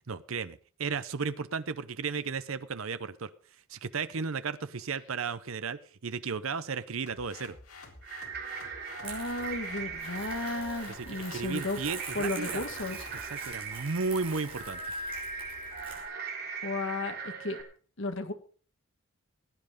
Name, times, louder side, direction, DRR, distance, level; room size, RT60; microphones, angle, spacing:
voice 1, 0.1-3.3 3.7-7.6 10.9-12.6 13.1-14.9, right 5 dB, 70° right, 13 dB, 0.8 m, -34 dB
sound 1, 7.1-13.3, left 3 dB, 80° left, 3.6 m, -50 dB
sound 2, 8.0-17.6, right 4 dB, 45° right, 3.4 m, -40 dB
voice 2, 9.0-11.8 12.1-13.1 16.6-17.6 18.0-18.3, left 2 dB, 60° left, 7 dB, 1.8 m, -34 dB
Crumpling crinkling, 9.0-16.0, right 4 dB, 25° right, 5.6 m, -46 dB
17.0 x 10.0 x 5.2 m, 0.40 s
head